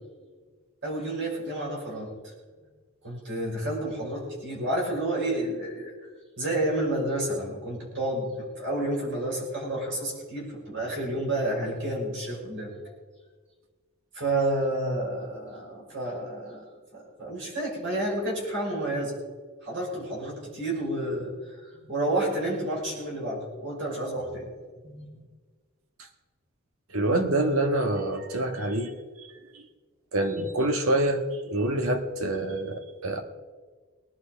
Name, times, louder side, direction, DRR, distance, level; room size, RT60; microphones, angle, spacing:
voice 1, 0.8-2.3 3.0-5.9 6.4-12.7 14.1-16.6 16.9-19.2 19.6-24.5 24.8-25.3, right 1 dB, 60° right, -3 dB, 5.9 m, -30 dB
voice 2, 26.9-28.9 29.2-29.3 29.5-29.6 30.1-33.2, right 1 dB, 75° right, 6 dB, 1.5 m, -26 dB
20.5 x 11.5 x 5.1 m, 1.4 s
head